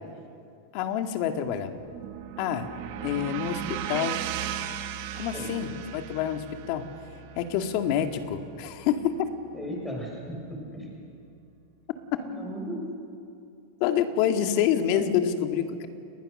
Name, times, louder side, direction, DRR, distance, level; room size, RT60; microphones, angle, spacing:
voice 1, 0.7-1.8 2.4-2.7 3.0-4.2 5.2-6.9 7.4-9.3 13.8-15.9, left 9 dB, 55° left, 7 dB, 2.0 m, -27 dB
sound 1, 1.5-9.6, right 11 dB, 60° right, 2.1 m, -37 dB
voice 2, 9.5-10.9 12.1-12.8 14.4-14.5 14.8-15.0, equal, 10° left, -1 dB, 6.7 m, -36 dB
30.0 x 20.0 x 6.7 m, 2.5 s
supercardioid pair, 130°, 0 cm